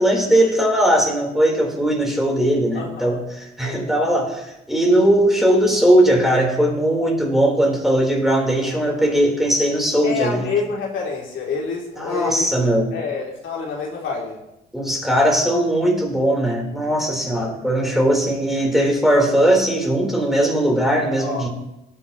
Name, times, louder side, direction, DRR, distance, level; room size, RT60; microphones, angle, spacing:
voice 1, 0.0-10.5 12.0-12.9 14.7-21.5, right 1 dB, ahead, -1 dB, 3.8 m, -19 dB
voice 2, 2.7-3.2 3.6-3.9 8.7-9.0 10.0-12.5 12.9-14.4 17.3-17.5 17.9-18.1 21.2-21.5, left 5 dB, 75° left, -2 dB, 3.0 m, -28 dB
17.5 x 9.8 x 3.0 m, 0.88 s
cardioid pair, 90°, 20 cm